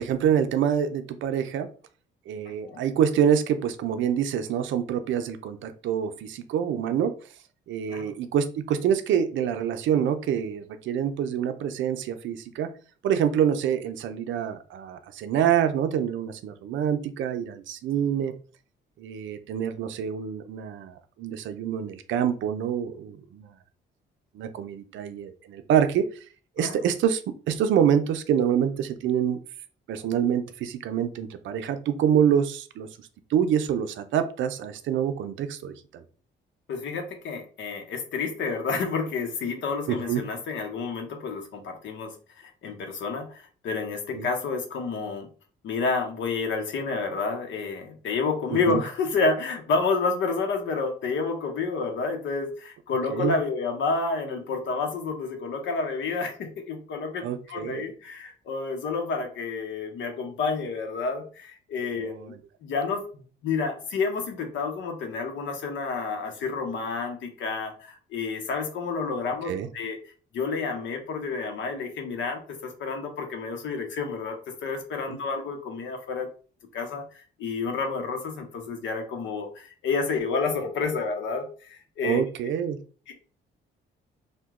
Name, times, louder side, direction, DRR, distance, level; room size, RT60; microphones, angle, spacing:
voice 1, 0.0-1.7 2.3-7.1 7.7-12.7 13.0-18.3 19.0-23.5 24.3-26.1 26.6-27.2 27.5-29.4 29.9-32.9 33.3-36.0 39.9-40.2 44.1-44.3 48.7-48.8 53.1-53.3 57.2-57.8 62.0-62.4 69.5-69.7 82.0-82.8, right 9 dB, 75° right, 9 dB, 0.5 m, -26 dB
voice 2, 36.7-45.3 45.6-76.3 76.7-77.0 77.4-82.2 83.1-83.2, left 4 dB, 70° left, 5 dB, 0.8 m, -30 dB
2.8 x 2.2 x 3.5 m, 0.40 s
cardioid pair, 90°, 20 cm